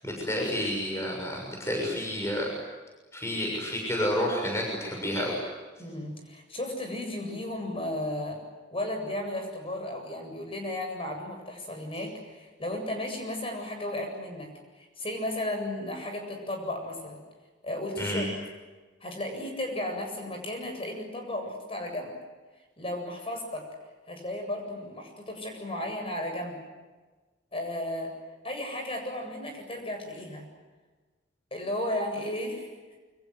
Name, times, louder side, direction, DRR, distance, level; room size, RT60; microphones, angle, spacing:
voice 1, 0.0-2.5 3.1-5.4 18.0-18.3, equal, 15° left, 0 dB, 6.8 m, -30 dB
voice 2, 5.8-8.4 8.7-14.5 14.8-17.2 17.6-18.2 19.0-22.1 22.8-23.7 24.1-26.6 27.5-28.1 28.4-30.5 31.5-32.7, left 1 dB, 30° left, 4 dB, 8.0 m, -34 dB
29.0 x 26.0 x 8.1 m, 1.3 s
head